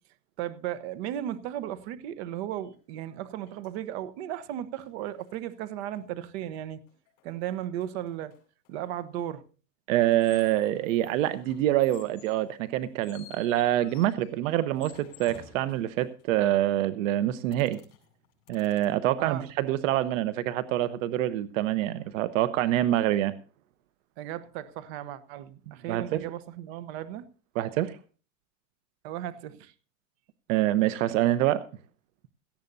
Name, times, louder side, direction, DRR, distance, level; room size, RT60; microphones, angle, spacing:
voice 1, 0.4-6.8 7.2-8.3 8.7-9.4 19.2-19.5 24.2-27.3 29.0-29.7, right 11 dB, 55° right, 14 dB, 1.1 m, -35 dB
sound 1, 2.7-2.8 3.5-3.9 4.4-4.5 4.7-6.6 6.9-9.0 10.0-16.4 17.5-18.9, left 8 dB, 45° left, 5.6 m, -53 dB
voice 2, 9.9-17.8 18.5-23.3 25.9-26.3 27.6-28.0 30.5-31.6, right 13 dB, 75° right, 14 dB, 1.0 m, -26 dB
17.5 x 14.0 x 2.7 m, 0.36 s
supercardioid pair, 165°, 39 cm